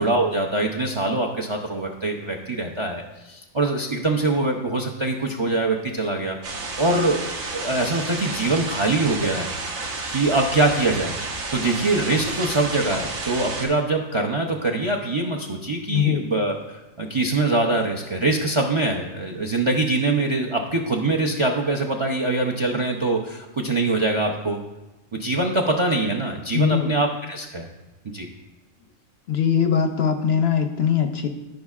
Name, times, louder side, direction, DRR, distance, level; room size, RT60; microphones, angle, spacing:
voice 1, 0.0-6.4 6.8-7.2 7.5-9.5 10.1-11.1 11.5-16.5 17.0-24.6 25.1-27.7 28.1-28.3, right 2 dB, 45° right, 1 dB, 0.3 m, -23 dB
sound 1, 6.4-13.7, right 3 dB, 90° right, 1.5 m, -31 dB
voice 2, 15.9-16.3 26.5-26.9 29.3-31.3, left 8 dB, 65° left, 6 dB, 0.7 m, -21 dB
14.0 x 5.3 x 2.4 m, 1.1 s
omnidirectional pair, 1.4 m